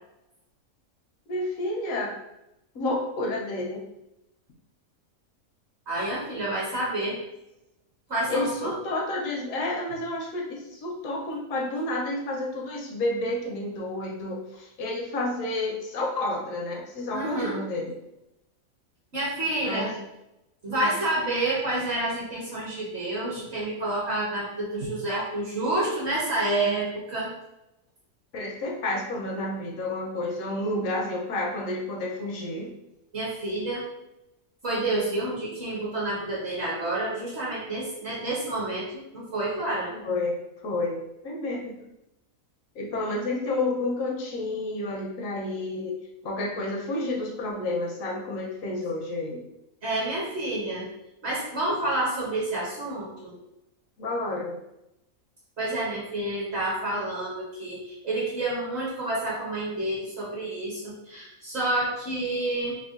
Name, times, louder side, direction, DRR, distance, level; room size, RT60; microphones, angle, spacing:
voice 1, 1.3-2.1 2.7-3.8 8.3-18.0 19.6-20.0 20.7-20.9 28.3-32.7 39.9-41.8 42.7-46.0 46.2-49.4 54.0-54.6, left 2 dB, 75° left, -1 dB, 1.0 m, -30 dB
voice 2, 5.9-7.2 8.1-8.7 17.1-17.6 19.1-19.9 20.6-27.3 33.1-33.8 34.6-39.9 49.8-50.9 51.2-53.3 55.6-62.7, right 2 dB, 55° right, -6 dB, 1.0 m, -29 dB
3.5 x 2.1 x 2.4 m, 0.86 s
omnidirectional pair, 1.5 m